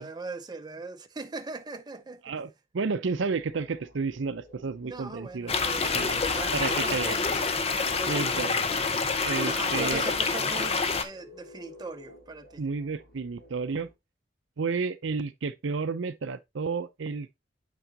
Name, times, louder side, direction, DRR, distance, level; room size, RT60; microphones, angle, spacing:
voice 1, 0.0-2.2 4.8-7.5 7.9-8.8 9.4-12.6, right 3 dB, 20° right, 0.6 m, -40 dB
voice 2, 2.2-6.2 6.5-7.2 8.1-8.5 9.2-10.0 12.6-13.9 14.6-17.4, right 4 dB, 80° right, 0.6 m, -31 dB
sound 1, 3.3-13.9, equal, 55° left, 2.8 m, -53 dB
sound 2, 5.5-11.0, left 4 dB, 35° left, 0.7 m, -27 dB
8.0 x 4.9 x 2.8 m
head